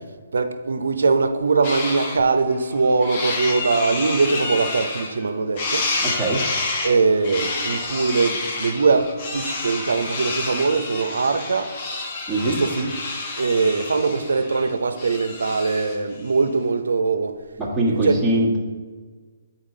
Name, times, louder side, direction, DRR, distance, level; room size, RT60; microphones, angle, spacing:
voice 1, 0.3-5.9 6.8-11.7 12.4-12.9 13.4-17.4 17.9-18.3, right 4 dB, 80° right, 0.6 m, -21 dB
sound 1, 1.6-2.2 2.6-5.3 5.6-16.0, left 3 dB, 40° left, 1.1 m, -29 dB
voice 2, 6.0-6.4 12.3-12.6 17.6-18.6, right 1 dB, 5° right, 1.3 m, -22 dB
8.1 x 4.3 x 3.8 m
hypercardioid pair, 150°, 0 cm